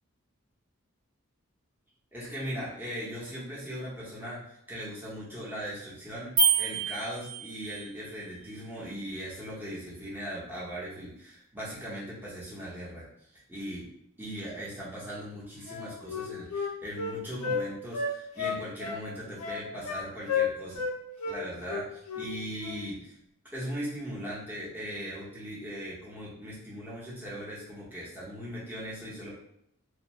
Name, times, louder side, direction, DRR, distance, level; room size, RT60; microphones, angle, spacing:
voice 1, 2.1-13.1 13.3-13.9 14.2-20.8 21.3-23.2 23.5-29.4, equal, 10° right, -7 dB, 0.7 m, -39 dB
sound 1, 6.4-7.9, right 5 dB, 60° right, 0.8 m, -27 dB
Wind instrument woodwind instrument, 15.7-17.6 17.9-19.0 19.4-20.0 20.3-20.9 21.2-21.4 21.7-22.3 22.6-22.8, left 5 dB, 80° left, 0.5 m, -32 dB
2.6 x 2.0 x 3.1 m, 0.78 s
head